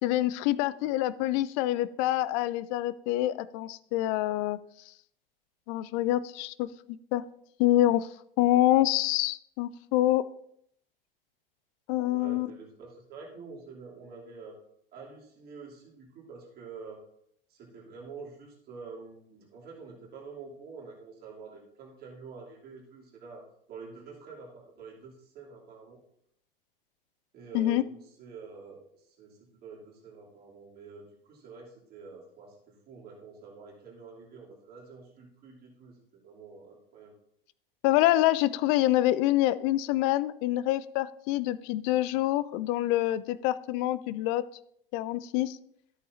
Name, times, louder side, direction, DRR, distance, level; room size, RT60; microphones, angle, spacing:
voice 1, 0.0-4.6 5.7-6.7 7.1-7.2 7.6-8.1 8.4-10.2 11.9-12.5 27.5-27.8 37.8-44.4 44.9-45.6, left 15 dB, 35° left, 17 dB, 0.4 m, -26 dB
voice 2, 12.1-14.6 14.9-17.0 17.5-26.0 27.3-37.1, right 5 dB, 30° right, -3 dB, 2.9 m, -47 dB
13.5 x 8.3 x 2.6 m, 0.71 s
figure-of-eight pair, 90°, 29 cm